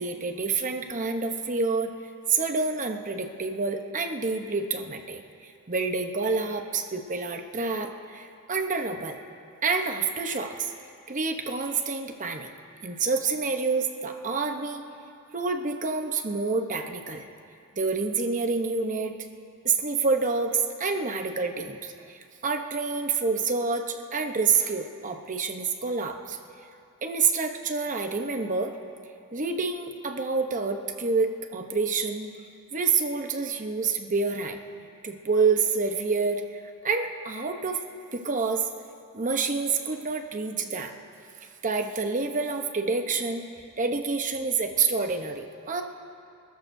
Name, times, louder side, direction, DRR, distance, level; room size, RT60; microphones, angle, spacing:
voice 1, 0.0-1.9 2.3-9.2 9.6-10.7 11.1-12.5 12.8-14.8 15.3-17.3 17.7-19.2 19.6-26.4 27.0-28.7 29.3-32.3 32.7-34.6 35.0-37.8 38.1-38.7 39.1-40.9 41.6-43.5 43.8-45.8, right 4 dB, 35° right, 5 dB, 0.9 m, -28 dB
27.0 x 13.5 x 2.7 m, 2.5 s
head